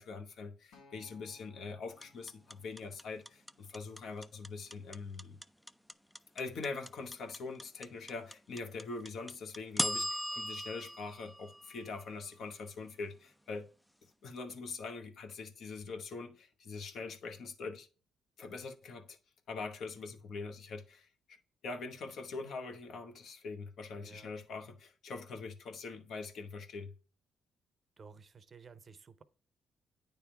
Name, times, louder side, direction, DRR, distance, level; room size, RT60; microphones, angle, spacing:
voice 1, 0.0-5.4 6.3-13.7 14.2-17.9 18.4-19.2 19.5-21.4 21.6-26.9, left 4 dB, 65° left, 1.0 m, -43 dB
Acoustic guitar, 0.7-5.0 5.8-5.9, left 2 dB, 85° left, 1.8 m, -66 dB
sound 1, 2.0-12.2, equal, 5° left, 0.3 m, -38 dB
voice 2, 23.9-24.4 28.0-29.2, right 5 dB, 40° right, 0.7 m, -54 dB
9.1 x 3.5 x 4.4 m
cardioid pair, 90°, 0 cm